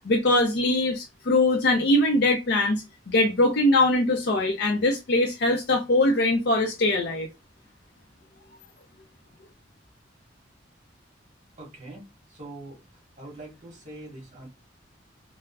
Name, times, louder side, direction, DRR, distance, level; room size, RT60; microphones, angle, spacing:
voice 1, 0.1-7.3, left 2 dB, 60° left, 0.5 m, -22 dB
voice 2, 11.6-12.8 13.2-14.5, right 2 dB, 40° right, 1.2 m, -43 dB
3.5 x 2.0 x 2.2 m
head